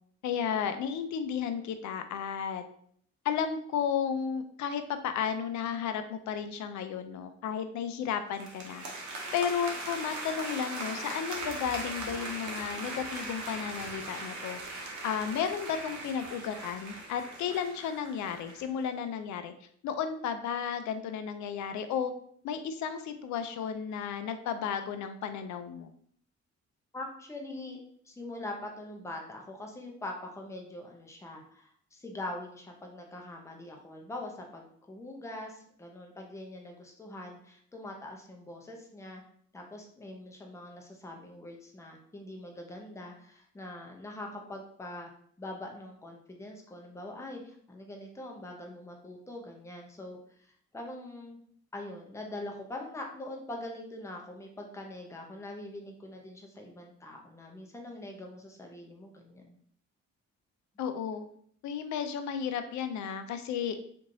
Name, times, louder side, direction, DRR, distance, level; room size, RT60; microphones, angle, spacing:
voice 1, 0.2-2.6 3.2-8.8 9.3-14.6 15.0-19.5 19.8-22.1 22.4-25.9 60.8-61.2 61.6-63.8, left 7 dB, 70° left, 9 dB, 0.5 m, -33 dB
sound 1, 8.3-18.7, right 2 dB, 75° right, 0.8 m, -39 dB
voice 2, 26.9-27.8 28.0-39.2 39.5-45.1 45.4-51.4 51.7-59.6, left 1 dB, 10° left, 1 dB, 0.6 m, -43 dB
3.0 x 2.5 x 2.6 m, 0.62 s
cardioid pair, 90°, 30 cm